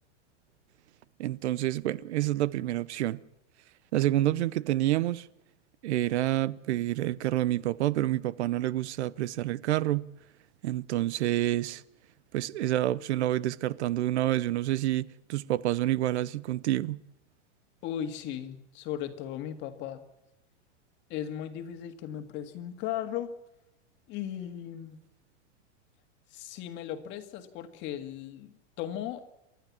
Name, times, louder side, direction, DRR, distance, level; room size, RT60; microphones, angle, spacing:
voice 1, 1.2-3.2 3.9-5.3 5.8-10.1 10.6-11.8 12.3-17.0, right 14 dB, 65° right, 0.8 m, -28 dB
voice 2, 17.8-20.0 21.1-23.3 24.1-25.0 26.3-29.2, left 10 dB, 30° left, 1.9 m, -37 dB
29.5 x 12.5 x 7.3 m
supercardioid pair, 160°, 36 cm